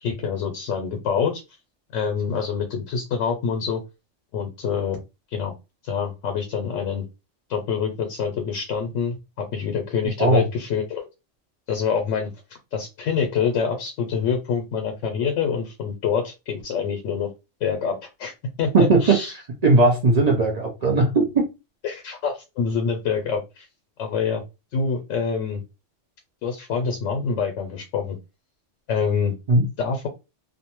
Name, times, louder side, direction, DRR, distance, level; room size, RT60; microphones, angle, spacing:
voice 1, 0.0-1.4 1.9-3.8 4.3-5.0 5.3-5.5 5.8-7.0 7.5-11.1 11.7-12.3 12.7-17.3 17.6-18.3 18.6-19.3 21.8-23.7 24.0-24.4 24.7-25.6 26.4-28.2 28.9-29.3 29.8-30.1, left 6 dB, 85° left, 0.9 m, -26 dB
voice 2, 18.7-19.2 19.6-21.4 29.5-29.7, right 3 dB, 50° right, 0.5 m, -18 dB
2.5 x 2.1 x 2.9 m
omnidirectional pair, 1.3 m